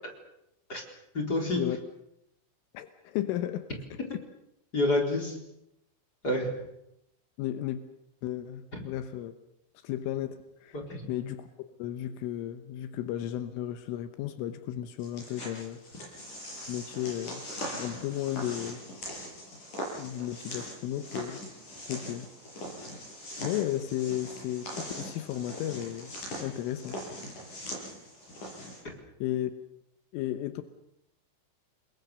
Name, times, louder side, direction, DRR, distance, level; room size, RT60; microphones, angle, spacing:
voice 1, 1.1-1.6 4.7-5.4 6.2-6.6 8.7-8.8 10.7-11.0, left 1 dB, 20° left, 1 dB, 4.0 m, -28 dB
voice 2, 2.7-3.7 4.1-4.2 7.4-7.8 8.2-9.3 9.8-10.8 11.1-11.5 11.8-15.8 16.7-17.4 17.8-18.8 20.0-21.4 21.9-22.3 23.4-26.1 26.4-27.0 29.2-29.5 30.1-30.6, left 12 dB, 80° left, 9 dB, 3.6 m, -34 dB
sound 1, 15.0-28.8, equal, 40° left, 8.7 m, -41 dB
29.5 x 22.0 x 6.8 m, 0.82 s
omnidirectional pair, 5.7 m